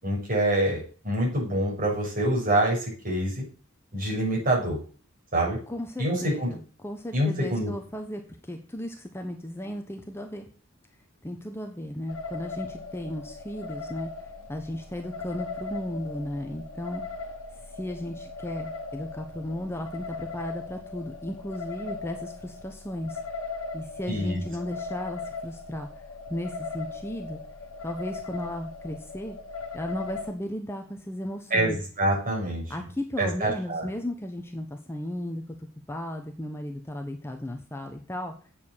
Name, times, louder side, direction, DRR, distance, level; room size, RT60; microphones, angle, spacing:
voice 1, 0.0-3.4 3.9-4.8 5.3-5.6 6.0-6.5 7.1-7.7 24.1-24.4 31.5-32.6 33.2-33.9, right 1 dB, 40° right, -3 dB, 6.3 m, -26 dB
voice 2, 5.7-10.5 11.2-14.1 14.5-17.0 17.7-23.2 23.7-25.9 26.3-27.4 27.8-29.4 29.7-31.8 32.7-38.3, left 1 dB, 10° left, 4 dB, 1.0 m, -35 dB
sound 1, 12.1-30.3, left 4 dB, 90° left, 1.4 m, -39 dB
8.6 x 7.4 x 7.3 m, 0.39 s
head